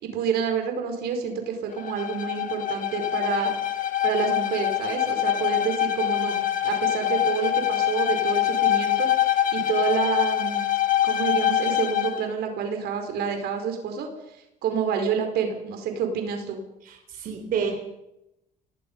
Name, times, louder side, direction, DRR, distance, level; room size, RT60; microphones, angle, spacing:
voice 1, 0.0-3.6 4.0-10.6 11.0-14.1 14.6-16.6, right 6 dB, 75° right, 5 dB, 4.9 m, -28 dB
Bowed string instrument, 1.7-12.2, left 12 dB, 50° left, 1.7 m, -24 dB
voice 2, 16.8-17.8, right 6 dB, 55° right, 2 dB, 4.0 m, -29 dB
26.0 x 19.0 x 5.6 m, 0.88 s
cardioid pair, 110°, 17 cm